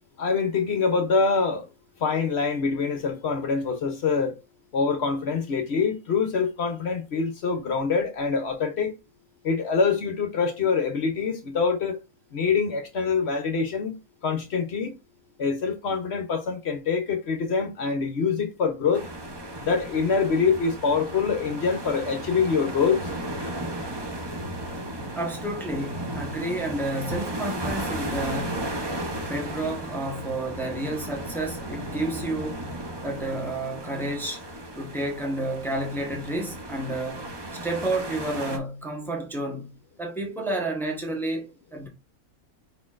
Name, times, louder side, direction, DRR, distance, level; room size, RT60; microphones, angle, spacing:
voice 1, 0.2-1.7 2.0-4.4 4.7-8.9 9.4-12.0 12.3-14.0 14.2-14.9 15.4-19.0 19.6-23.1, left 5 dB, 55° left, 0.8 m, -25 dB
sound 1, 18.9-38.6, right 1 dB, 35° right, 0.4 m, -35 dB
voice 2, 25.1-28.7 29.2-32.7 33.0-34.4 34.7-37.3 37.6-41.9, right 1 dB, ahead, 0.9 m, -30 dB
5.2 x 4.0 x 2.4 m
omnidirectional pair, 1.6 m